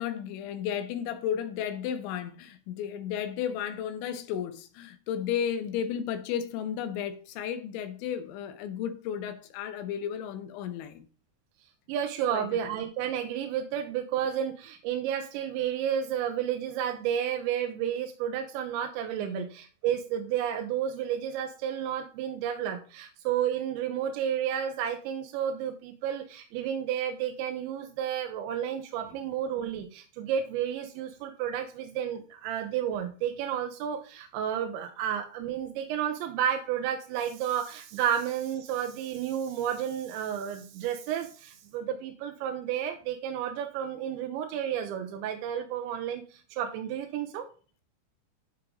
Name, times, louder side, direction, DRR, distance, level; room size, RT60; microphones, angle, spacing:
voice 1, 0.0-11.1 12.3-12.5 19.2-19.5, left 9 dB, 85° left, 3.2 m, -33 dB
voice 2, 11.9-47.5, right 9 dB, 90° right, 3.1 m, -31 dB
11.5 x 4.9 x 3.8 m
omnidirectional pair, 5.3 m